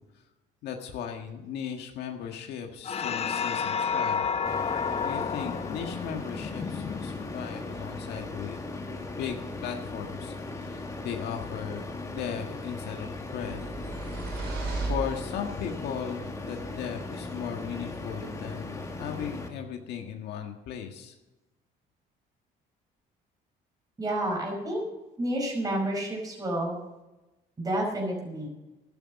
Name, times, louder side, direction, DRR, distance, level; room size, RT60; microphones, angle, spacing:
voice 1, 0.6-4.2 5.0-8.6 9.2-13.6 14.8-21.1, left 8 dB, 75° left, 4 dB, 1.6 m, -37 dB
sound 1, 2.8-7.6, left 6 dB, 35° left, 0.8 m, -31 dB
sound 2, 4.5-19.5, left 2 dB, 20° left, 2.1 m, -38 dB
sound 3, 13.4-15.8, right 3 dB, 85° right, 6.2 m, -34 dB
voice 2, 24.0-24.8 25.2-26.8 27.6-28.5, right 1 dB, 20° right, -2 dB, 5.2 m, -29 dB
12.5 x 11.5 x 6.5 m, 1.0 s
cardioid pair, 110°, 17 cm